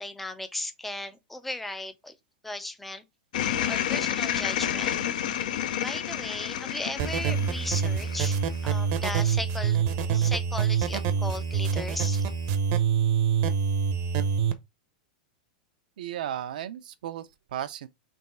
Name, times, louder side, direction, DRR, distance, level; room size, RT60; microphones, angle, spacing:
voice 1, 0.0-2.1 2.4-3.0 3.7-5.0 5.8-8.4 8.6-9.8 10.1-12.2, left 2 dB, 5° left, 0.4 m, -36 dB
sound 1, 3.3-8.8, left 10 dB, 75° left, 0.5 m, -30 dB
sound 2, 7.0-14.5, right 7 dB, 45° right, 0.7 m, -26 dB
voice 2, 16.0-17.9, right 10 dB, 80° right, 0.6 m, -35 dB
3.5 x 3.0 x 4.1 m
supercardioid pair, 160°, 4 cm